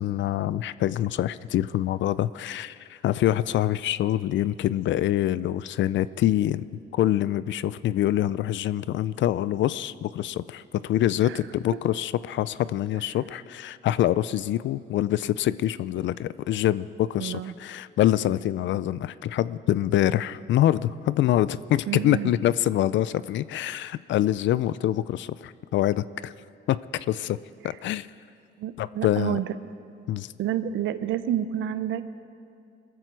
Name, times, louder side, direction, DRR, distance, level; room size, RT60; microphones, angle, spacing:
voice 1, 0.0-6.7 6.9-26.3 26.7-27.4 27.6-28.1 28.8-29.4 30.1-30.3, left 13 dB, 70° left, 17 dB, 0.4 m, -25 dB
voice 2, 17.2-17.5 21.9-22.4 27.6-27.8 28.6-29.5 30.4-32.1, right 11 dB, 80° right, 12 dB, 0.8 m, -30 dB
22.0 x 14.0 x 4.7 m, 2.5 s
cardioid pair, 90°, 20 cm